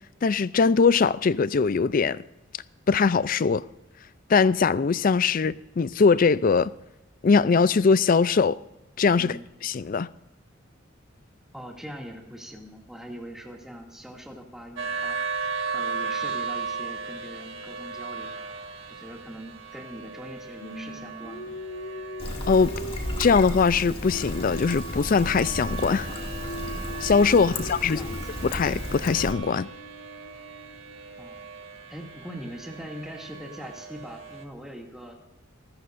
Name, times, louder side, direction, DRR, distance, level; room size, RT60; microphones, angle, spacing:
voice 1, 0.2-2.2 2.9-3.6 4.3-6.7 7.2-8.6 9.0-9.3 9.6-10.1 22.5-22.7 23.2-26.1 27.0-28.0 28.4-29.7, left 5 dB, 45° left, 0.4 m, -21 dB
voice 2, 11.5-15.2 15.7-18.4 18.9-21.5 27.4-28.3 31.2-31.5 31.9-35.2, equal, ahead, 2.4 m, -42 dB
sound 1, 14.8-34.4, right 5 dB, 70° right, 1.8 m, -37 dB
Singing, 20.6-24.9 25.2-31.2, left 1 dB, 85° left, 1.6 m, -41 dB
Trickle dribble, 22.2-29.3, left 1 dB, 30° left, 2.2 m, -34 dB
25.5 x 14.0 x 2.6 m
head